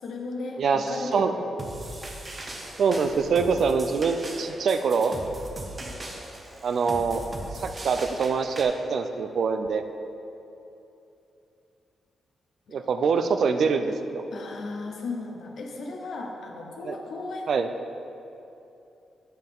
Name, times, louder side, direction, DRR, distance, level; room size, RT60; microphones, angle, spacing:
voice 1, 0.0-1.4 12.7-12.8 14.3-17.5, left 3 dB, 65° left, 1 dB, 0.9 m, -35 dB
voice 2, 0.6-1.3 2.8-5.1 6.6-7.2 7.6-9.8 12.7-14.2 16.8-17.0 17.5-17.7, right 5 dB, 60° right, 8 dB, 0.4 m, -24 dB
sound 1, 1.6-8.6, right 1 dB, 30° right, 0.8 m, -39 dB
9.1 x 5.8 x 3.6 m, 2.8 s
wide cardioid pair, 130°, 0 cm